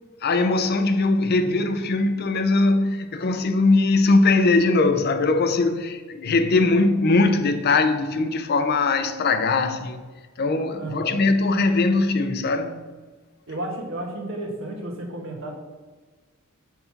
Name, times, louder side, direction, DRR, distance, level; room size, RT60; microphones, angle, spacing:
voice 1, 0.2-10.0 10.4-12.9, left 3 dB, 50° left, 0.5 m, -21 dB
voice 2, 10.8-11.3 13.5-15.5, right 1 dB, 65° right, 1.3 m, -32 dB
5.9 x 4.0 x 5.7 m
head